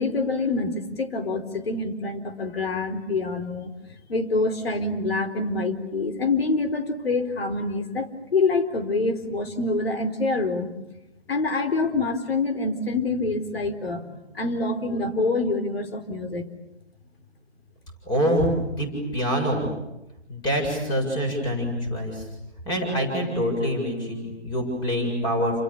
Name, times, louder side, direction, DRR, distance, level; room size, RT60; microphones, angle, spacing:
voice 1, 0.0-3.7 4.1-10.7 11.3-16.5, left 3 dB, 60° left, 7 dB, 4.4 m, -26 dB
voice 2, 18.1-18.5 18.8-19.7 20.3-22.2 22.7-25.6, equal, 10° left, 4 dB, 7.4 m, -25 dB
29.5 x 28.5 x 7.1 m, 0.93 s
figure-of-eight pair, 150°, 33 cm